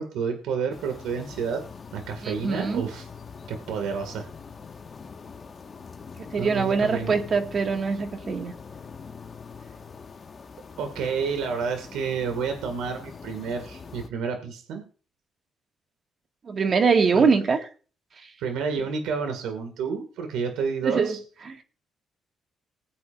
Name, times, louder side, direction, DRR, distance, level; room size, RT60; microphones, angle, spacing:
voice 1, 0.0-1.6 1.9-3.1 3.5-4.3 6.4-7.2 10.8-14.8 17.1-17.3 18.4-21.2, right 5 dB, 90° right, 2.0 m, -30 dB
sound 1, 0.7-14.1, left 5 dB, 40° left, 1.5 m, -43 dB
voice 2, 2.2-2.9 6.2-8.5 16.4-17.6 20.8-21.2 21.5-21.6, right 5 dB, 45° right, 1.9 m, -23 dB
20.5 x 8.4 x 2.6 m
cardioid pair, 90°, 0 cm